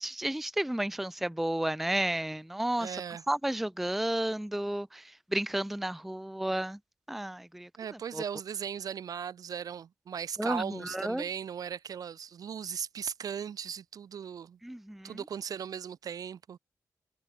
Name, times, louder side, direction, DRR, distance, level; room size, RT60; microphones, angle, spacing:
voice 1, 0.0-2.9 3.3-5.0 5.3-6.8 7.1-7.7 8.1-8.2 10.4-11.2 14.6-15.2, right 1 dB, 5° right, 0.4 m, -32 dB
voice 2, 2.8-3.2 7.8-14.6 15.0-16.6, right 8 dB, 70° right, 1.2 m, -38 dB
wide cardioid pair, 115°, 6 cm